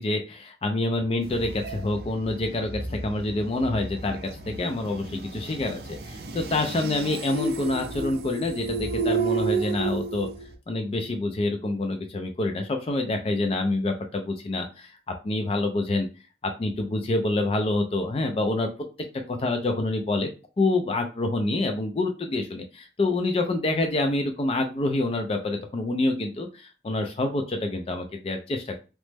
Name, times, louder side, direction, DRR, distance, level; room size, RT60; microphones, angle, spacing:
voice 1, 0.0-10.3 10.7-15.0 15.2-16.1 16.6-18.7 19.3-20.3 20.6-28.7, left 2 dB, 30° left, 4 dB, 0.3 m, -27 dB
sound 1, 1.2-10.6, right 4 dB, 60° right, 0.4 m, -32 dB
3.0 x 2.0 x 3.2 m, 0.33 s
head